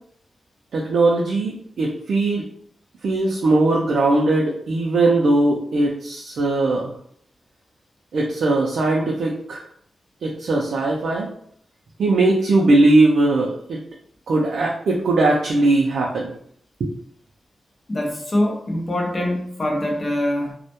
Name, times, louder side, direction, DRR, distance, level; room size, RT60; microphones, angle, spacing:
voice 1, 0.7-2.4 3.0-6.9 8.1-9.7 10.2-11.3 12.0-13.8 14.3-16.3 16.8-16.9, right 2 dB, 70° right, -2 dB, 0.3 m, -19 dB
voice 2, 17.9-20.5, left 1 dB, 30° left, 0 dB, 0.5 m, -23 dB
2.1 x 2.1 x 2.8 m, 0.65 s
wide cardioid pair, 155°, 0 cm